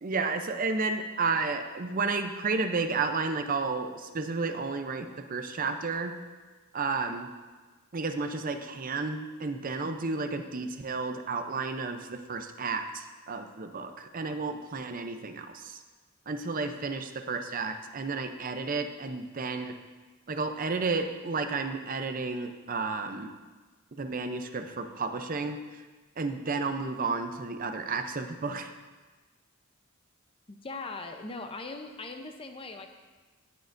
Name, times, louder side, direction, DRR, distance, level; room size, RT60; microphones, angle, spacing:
voice 1, 0.0-6.1 6.7-7.3 7.9-15.8 16.3-19.8 20.3-23.3 24.0-25.8 26.2-28.7, right 4 dB, 40° right, 6 dB, 0.6 m, -32 dB
voice 2, 30.5-32.9, left 3 dB, 25° left, 5 dB, 0.7 m, -40 dB
16.5 x 6.5 x 2.6 m, 1.3 s
head